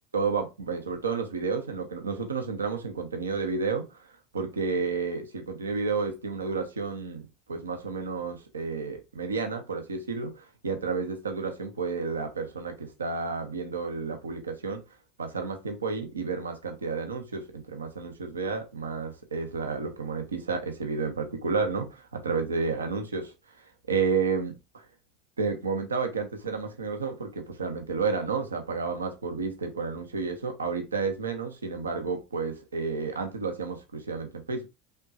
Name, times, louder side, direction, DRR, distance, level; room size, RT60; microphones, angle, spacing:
voice 1, 0.1-7.2 7.5-14.8 15.2-24.8 25.4-34.7, right 4 dB, 90° right, 0.7 m, -31 dB
4.3 x 3.0 x 2.6 m
hypercardioid pair, 80°, 0 cm